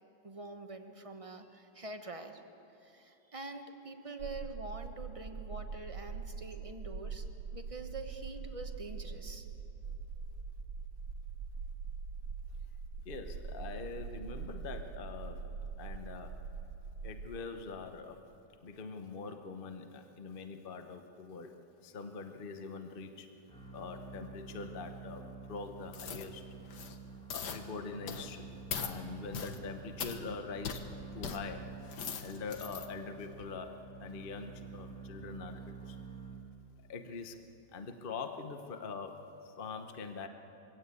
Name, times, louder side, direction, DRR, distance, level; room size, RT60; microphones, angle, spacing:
voice 1, 0.2-2.4 2.7-7.3 7.5-9.5, right 2 dB, 25° right, 6 dB, 0.9 m, -45 dB
sound 1, 4.2-17.3, right 5 dB, 75° right, 1.6 m, -43 dB
voice 2, 13.0-15.4 15.8-16.4 17.0-18.2 18.6-21.5 21.8-23.3 23.7-26.4 27.3-28.5 28.8-30.8 31.1-33.7 34.0-36.0 36.9-37.4 37.7-40.3, left 4 dB, 35° left, 6 dB, 1.0 m, -43 dB
sound 2, 23.5-36.9, right 4 dB, 5° left, 1.2 m, -49 dB
sound 3, 25.9-26.3 26.7-27.0 27.3-27.6 28.1-28.3 28.7-28.9 29.3-29.6 30.0-30.2 30.6-30.8 31.2-31.4 31.8-32.9 33.3-33.4, left 7 dB, 65° left, 1.7 m, -40 dB
23.5 x 17.0 x 8.4 m, 3.0 s
omnidirectional pair, 2.0 m